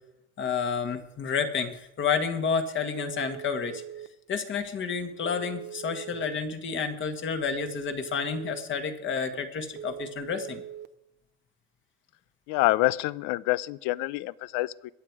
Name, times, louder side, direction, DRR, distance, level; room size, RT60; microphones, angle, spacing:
voice 1, 0.4-3.8 4.3-10.6, left 6 dB, 40° left, 7 dB, 1.9 m, -30 dB
Telephone, 3.0-4.1 5.2-6.3 7.5-8.6 9.8-10.9, right 10 dB, 35° right, 0.7 m, -41 dB
voice 2, 12.5-14.9, left 18 dB, 75° left, 21 dB, 0.6 m, -27 dB
22.0 x 7.9 x 4.8 m, 0.86 s
cardioid pair, 130°, 31 cm